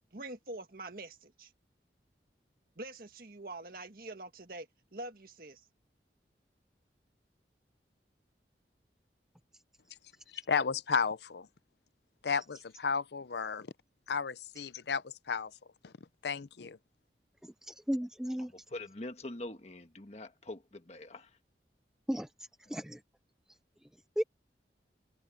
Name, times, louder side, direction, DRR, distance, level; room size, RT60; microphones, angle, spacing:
voice 1, 0.1-1.5 2.8-5.6, right 2 dB, 55° right, 1.7 m, -45 dB
voice 2, 10.3-11.5 12.2-13.7 14.1-15.5 15.8-15.9 16.2-16.8, left 5 dB, 70° left, 0.6 m, -33 dB
voice 3, 17.4-18.5 22.1-22.3 22.7-23.0 24.2-24.3, equal, 5° right, 0.3 m, -34 dB
voice 4, 18.5-21.4, left 2 dB, 40° left, 1.5 m, -44 dB
head